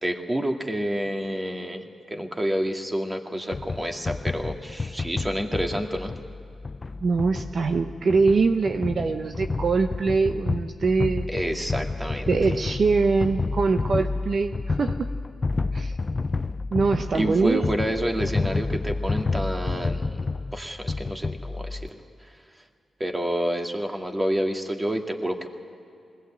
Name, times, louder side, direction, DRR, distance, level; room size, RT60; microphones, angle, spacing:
voice 1, 0.0-1.8 2.1-6.1 11.3-12.3 17.1-22.0 23.0-25.5, equal, 20° right, 3 dB, 2.2 m, -28 dB
sound 1, 3.5-21.9, left 3 dB, 40° left, 0.5 m, -30 dB
voice 2, 7.0-11.3 12.3-15.1 15.7-15.9 16.7-17.6, right 4 dB, 60° right, 6 dB, 0.8 m, -23 dB
20.5 x 18.0 x 8.8 m, 2.6 s
supercardioid pair, 50°, 0 cm